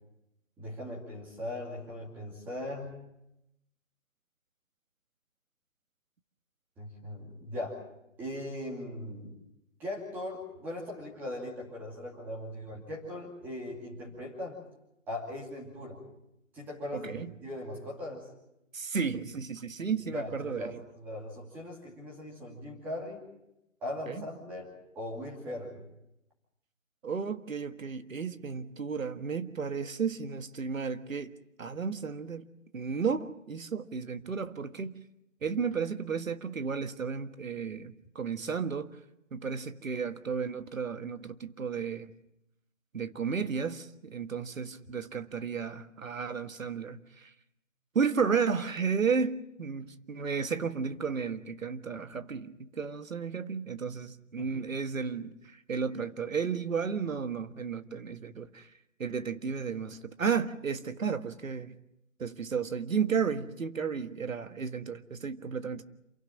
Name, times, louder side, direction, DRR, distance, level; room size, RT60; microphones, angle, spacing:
voice 1, 0.6-2.9 6.8-7.8 8.2-9.4 9.8-14.6 15.1-16.0 16.5-18.3 20.1-23.2 23.8-25.8 54.4-54.6, left 1 dB, 5° right, 2.4 m, -39 dB
voice 2, 16.9-17.3 18.7-20.8 24.1-24.2 27.0-31.3 31.6-35.0 35.4-38.9 39.3-42.1 42.9-47.3 47.9-58.7 59.0-61.7 62.2-65.8, right 6 dB, 85° right, 1.7 m, -33 dB
28.0 x 11.5 x 10.0 m
hypercardioid pair, 175°, 39 cm